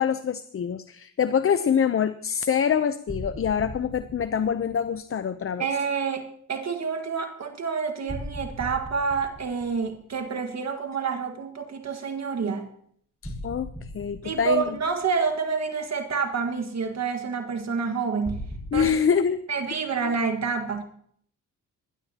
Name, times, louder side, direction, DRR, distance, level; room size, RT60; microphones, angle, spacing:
voice 1, 0.0-5.7 13.2-13.7 13.9-14.7 18.7-19.4, left 7 dB, 40° left, 12 dB, 0.7 m, -25 dB
sound 1, 3.1-5.1 8.1-10.4 13.2-15.3 18.2-18.9, equal, 5° left, 5.9 m, -38 dB
voice 2, 5.6-12.7 14.2-18.4 18.7-18.9 19.5-20.8, right 5 dB, 50° right, 5 dB, 1.7 m, -28 dB
20.5 x 14.5 x 2.9 m, 0.62 s
cardioid pair, 75°, 35 cm